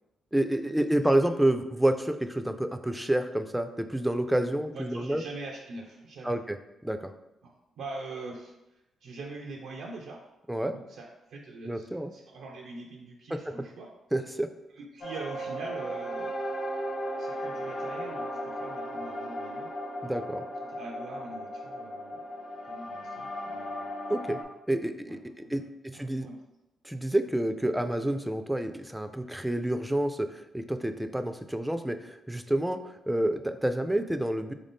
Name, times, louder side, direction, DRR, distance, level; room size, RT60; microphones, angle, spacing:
voice 1, 0.3-5.2 6.2-6.6 6.8-7.1 10.5-10.8 11.6-12.1 13.3-13.5 14.1-14.5 20.0-20.5 24.1-24.4 24.7-26.3 26.8-34.5, right 1 dB, 5° right, 9 dB, 0.3 m, -29 dB
voice 2, 4.7-6.4 7.4-8.5 9.0-10.2 10.7-13.9 14.8-16.3 17.2-19.7 20.7-22.2 22.7-23.9 25.1-25.7 25.9-26.4, right 3 dB, 80° right, 0 dB, 0.4 m, -43 dB
sound 1, 15.0-24.4, equal, 55° left, 0.6 m, -36 dB
3.5 x 2.6 x 3.5 m, 0.94 s
cardioid pair, 70°, 0 cm